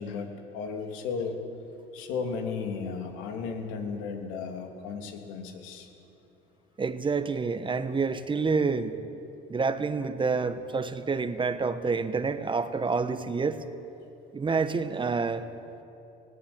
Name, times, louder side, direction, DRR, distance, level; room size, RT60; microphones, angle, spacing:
voice 1, 0.0-1.4 1.9-5.9, left 5 dB, 80° left, 3 dB, 3.1 m, -34 dB
voice 2, 6.8-8.9 9.5-13.6 14.3-15.5, right 4 dB, 25° right, 11 dB, 1.2 m, -28 dB
20.0 x 17.0 x 8.8 m, 2.8 s
supercardioid pair, 90°, 20 cm